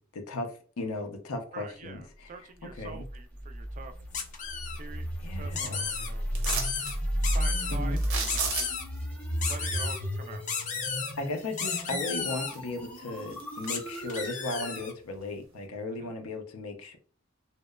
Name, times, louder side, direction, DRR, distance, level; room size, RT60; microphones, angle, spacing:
voice 1, 0.0-2.3 2.7-3.0 5.2-5.8 7.7-8.0 11.0-17.0, left 2 dB, 85° left, 6 dB, 0.5 m, -36 dB
voice 2, 1.5-3.9 4.8-5.1 5.3-6.3 7.3-8.3 9.5-10.4 15.9-16.1, right 4 dB, 35° right, 8 dB, 0.3 m, -45 dB
sound 1, 2.7-14.8, equal, 5° left, 0.7 m, -34 dB
sound 2, 4.1-4.8 5.5-6.1 6.4-6.9 7.2-7.8 8.3-8.8 9.4-10.0 10.5-11.1 11.6-12.5 13.7-13.8 14.1-14.9, left 6 dB, 35° left, 0.4 m, -33 dB
sound 3, 6.3-7.0 8.0-9.0 11.5-11.6 12.1-12.8 13.2-14.3 14.8-14.9, right 5 dB, 80° right, 0.6 m, -34 dB
2.8 x 2.1 x 2.2 m, 0.40 s
head